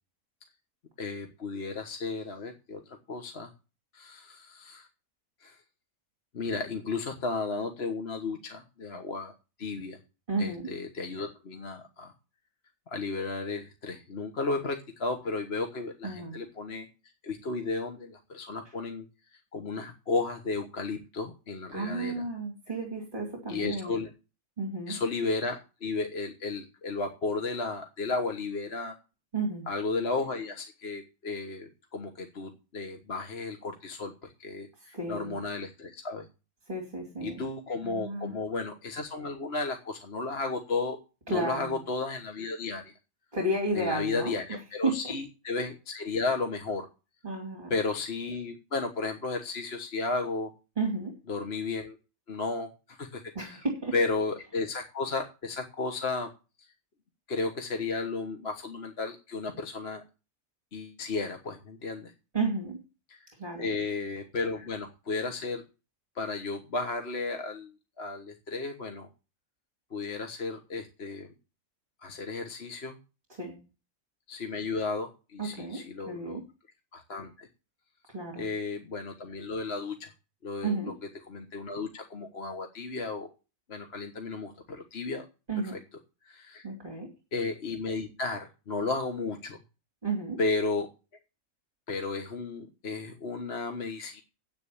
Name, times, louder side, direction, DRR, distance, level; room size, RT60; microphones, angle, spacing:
voice 1, 1.0-3.5 3.9-4.9 5.4-5.6 6.3-9.3 9.6-10.0 10.4-12.1 12.9-16.9 17.2-22.2 23.5-24.1 24.9-28.9 29.7-36.3 37.2-41.0 41.3-42.9 43.7-46.9 47.7-50.5 51.3-52.0 52.3-53.6 53.9-56.3 56.6-56.7 57.3-60.0 60.7-62.1 63.1-63.3 63.6-65.6 66.1-69.1 69.9-71.3 72.0-73.0 74.3-76.4 76.9-77.5 78.4-80.1 80.4-80.9 81.3-83.3 83.7-85.2 85.7-85.8 86.2-86.7 87.3-89.6 90.4-90.9 91.9-94.2, left 3 dB, 50° left, 5 dB, 1.5 m, -34 dB
voice 2, 10.3-10.7 16.0-16.4 21.7-23.9 24.6-24.9 29.3-29.7 34.9-35.4 36.7-37.4 37.8-38.4 41.3-41.8 43.3-44.4 44.8-45.1 47.2-47.7 50.8-51.2 53.3-53.9 62.3-62.8 63.4-63.8 73.3-73.6 75.4-76.4 78.1-78.5 80.6-80.9 85.5-85.8 86.6-87.1 90.0-90.4, right 2 dB, 35° right, 1 dB, 2.9 m, -32 dB
9.9 x 8.8 x 7.1 m, 0.32 s
omnidirectional pair, 1.5 m